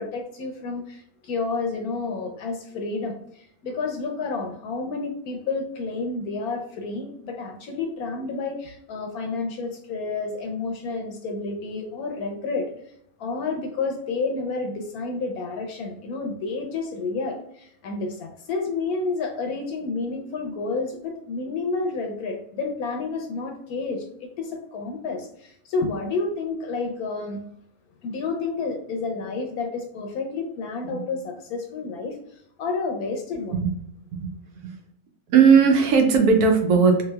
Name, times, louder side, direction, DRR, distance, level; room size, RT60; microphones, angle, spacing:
voice 1, 0.0-12.7 13.2-27.4 28.0-32.2 32.6-33.6, left 3 dB, 75° left, 3 dB, 1.0 m, -30 dB
voice 2, 35.3-37.0, right 5 dB, 75° right, 3 dB, 1.2 m, -17 dB
3.3 x 3.1 x 2.2 m, 0.71 s
omnidirectional pair, 1.7 m